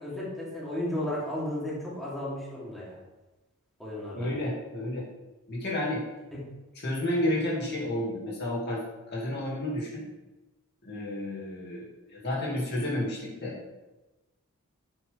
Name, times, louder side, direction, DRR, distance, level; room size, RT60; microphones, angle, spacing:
voice 1, 0.0-3.0 3.8-4.3 6.3-6.4, left 1 dB, ahead, -8 dB, 3.1 m, -34 dB
voice 2, 4.1-5.1 5.5-6.1 6.8-8.8 9.1-10.0 10.8-11.8 12.1-13.6, left 1 dB, 50° left, -5 dB, 2.3 m, -31 dB
11.0 x 7.5 x 3.5 m, 1.1 s
head